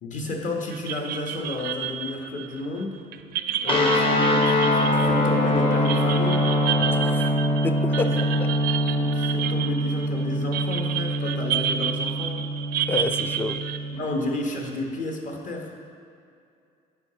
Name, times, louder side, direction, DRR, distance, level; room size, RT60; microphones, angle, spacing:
voice 1, 0.0-3.0 3.6-6.5 7.9-8.2 8.9-12.4 13.9-15.7, left 1 dB, 50° left, 1 dB, 1.2 m, -31 dB
sound 1, 0.7-13.8, right 10 dB, 70° right, 0.4 m, -31 dB
Wind instrument woodwind instrument, 3.4-7.8, left 8 dB, 90° left, 0.6 m, -35 dB
sound 2, 3.7-14.0, equal, 30° left, 0.9 m, -24 dB
voice 2, 6.8-8.5 12.9-13.6, left 3 dB, 10° left, 9 dB, 0.3 m, -30 dB
8.1 x 4.9 x 5.7 m, 2.4 s
cardioid pair, 110°, 17 cm